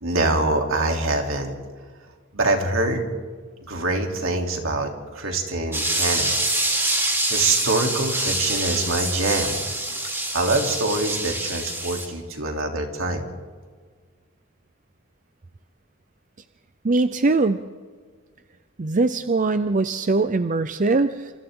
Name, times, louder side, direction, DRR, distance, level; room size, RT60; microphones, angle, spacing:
voice 1, 0.0-1.6 2.3-3.1 3.7-6.4 7.3-9.6 10.3-13.3, right 2 dB, 75° right, 2 dB, 3.3 m, -24 dB
sound 1, 5.7-12.1, right 1 dB, 10° right, 3.7 m, -25 dB
voice 2, 16.8-17.6 18.8-21.3, right 3 dB, 40° right, 11 dB, 0.6 m, -21 dB
29.0 x 27.5 x 3.8 m, 1.5 s
head